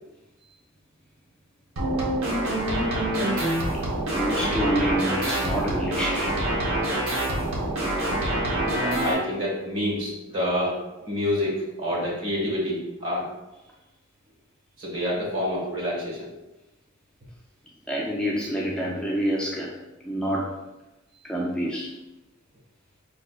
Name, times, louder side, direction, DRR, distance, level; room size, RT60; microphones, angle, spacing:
sound 1, 1.8-9.1, right 1 dB, 85° right, 0.8 m, -26 dB
voice 1, 3.2-3.5 4.1-6.4 17.9-19.7 20.0-20.6 21.2-21.9, equal, 5° left, -4 dB, 0.3 m, -27 dB
voice 2, 8.8-10.8 11.1-13.3 14.8-16.3, left 1 dB, 65° right, -4 dB, 1.3 m, -27 dB
4.7 x 2.2 x 2.4 m, 1.0 s
head